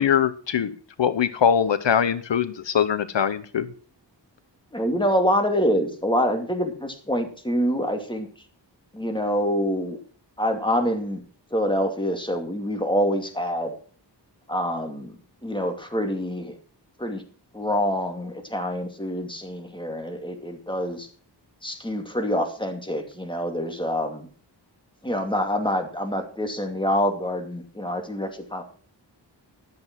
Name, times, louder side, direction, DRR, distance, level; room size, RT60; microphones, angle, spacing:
voice 1, 0.0-3.7, left 8 dB, 80° left, 13 dB, 0.8 m, -22 dB
voice 2, 4.7-8.3 8.9-10.0 10.4-11.2 11.5-13.7 14.5-15.2 15.4-16.6 17.0-17.2 17.5-21.1 21.6-24.3 25.0-28.6, equal, 10° left, 5 dB, 2.4 m, -26 dB
12.0 x 7.7 x 6.0 m, 0.43 s
wide cardioid pair, 75°, 43 cm